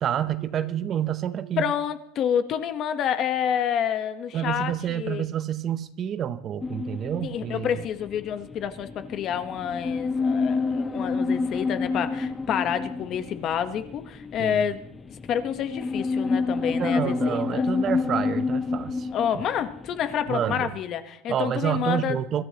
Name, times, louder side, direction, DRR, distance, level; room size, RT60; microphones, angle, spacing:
voice 1, 0.0-1.7 4.3-7.8 14.4-14.6 16.8-19.1 20.3-20.7 21.3-22.4, right 10 dB, 30° right, 13 dB, 0.7 m, -28 dB
voice 2, 1.6-5.3 7.2-14.8 15.3-17.7 19.1-22.2, left 8 dB, 35° left, 11 dB, 1.0 m, -28 dB
sound 1, 6.6-20.6, left 4 dB, 15° left, 0.5 m, -29 dB
23.5 x 13.5 x 2.9 m, 0.74 s
supercardioid pair, 155°, 0 cm